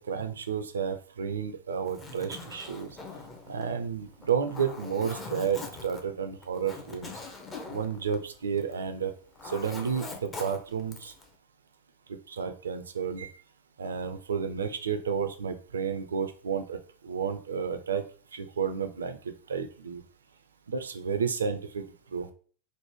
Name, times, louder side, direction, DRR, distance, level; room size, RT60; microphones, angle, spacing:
voice 1, 0.1-2.9 3.5-7.1 7.7-9.1 9.4-11.1 12.3-13.3 13.8-16.8 17.0-18.0 18.3-20.0 20.7-21.8 22.1-22.3, right 6 dB, 70° right, 8 dB, 0.3 m, -31 dB
Zipper (clothing), 1.7-8.9 9.1-11.3, left 3 dB, 20° left, 0.5 m, -42 dB
3.1 x 2.0 x 3.1 m, 0.42 s
figure-of-eight pair, 90°, 0 cm